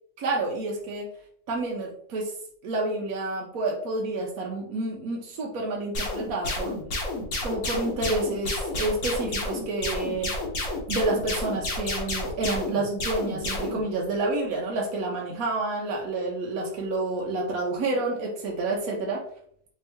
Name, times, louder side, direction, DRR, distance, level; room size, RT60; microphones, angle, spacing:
voice 1, 0.2-1.1 1.5-2.3 2.6-6.7 7.4-10.3 10.9-19.2, right 2 dB, 65° right, -1 dB, 1.0 m, -29 dB
sound 1, 5.9-13.8, left 2 dB, 55° left, 1.3 m, -30 dB
3.5 x 2.8 x 3.3 m, 0.63 s
omnidirectional pair, 1.8 m